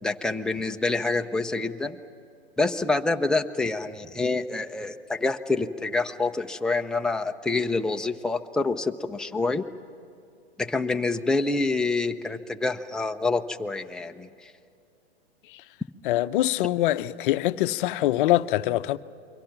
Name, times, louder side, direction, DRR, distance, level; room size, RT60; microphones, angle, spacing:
voice 1, 0.0-2.0 2.6-9.6 10.6-14.3, left 3 dB, ahead, 0.6 m, -27 dB
voice 2, 16.0-19.0, left 15 dB, 50° left, 0.8 m, -24 dB
29.0 x 23.5 x 5.9 m
hypercardioid pair, 115°, 33 cm